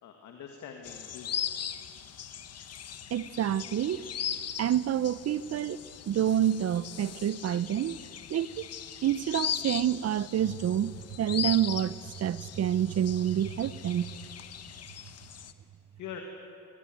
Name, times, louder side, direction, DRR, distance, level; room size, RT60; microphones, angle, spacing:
voice 1, 0.0-1.3 15.9-16.2, left 8 dB, 75° left, 2.1 m, -44 dB
sound 1, 0.8-15.5, left 9 dB, 55° left, 1.2 m, -39 dB
voice 2, 3.1-4.0 4.6-8.0 8.3-8.7 9.0-14.1, right 10 dB, 55° right, 0.8 m, -28 dB
21.5 x 20.0 x 9.4 m
cardioid pair, 90°, 30 cm